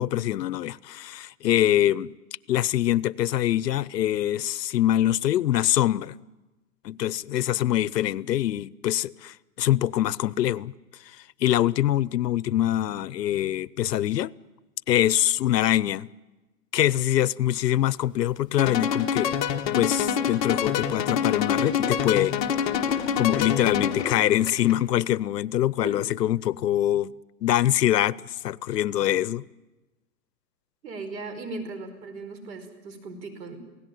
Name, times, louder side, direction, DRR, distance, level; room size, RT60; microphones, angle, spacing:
voice 1, 0.0-2.1 2.5-6.2 6.8-10.7 11.4-14.3 14.9-16.1 16.7-19.4 19.7-22.4 23.2-27.1 27.4-28.2 28.4-29.4, left 12 dB, 80° left, 0.8 m, -24 dB
sound 1, 18.6-24.2, left 8 dB, 30° left, 1.5 m, -26 dB
Tools, 18.7-19.1 19.7-19.8 20.0-20.1 20.4-20.6 20.9-21.0 21.2-24.7, left 6 dB, 10° left, 1.4 m, -38 dB
voice 2, 30.8-33.6, right 3 dB, 90° right, 4.9 m, -37 dB
27.0 x 18.0 x 9.3 m
hypercardioid pair, 165°, 48 cm